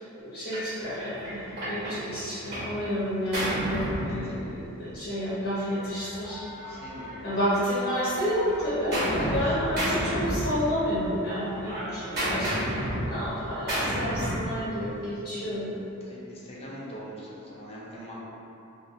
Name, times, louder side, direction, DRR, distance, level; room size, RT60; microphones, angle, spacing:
voice 1, 0.2-6.4 7.2-15.7, equal, 45° left, -12 dB, 0.9 m, -30 dB
Gunshot gunfire, 0.5-0.7 1.2-2.8 3.0-4.7 5.7-7.5 7.9-9.5 9.8-11.0 11.3-14.5, equal, 50° right, 1.3 m, -31 dB
voice 2, 6.6-7.5 9.1-9.5 16.1-18.1, equal, 30° left, -6 dB, 0.5 m, -42 dB
3.9 x 2.1 x 2.4 m, 2.9 s
head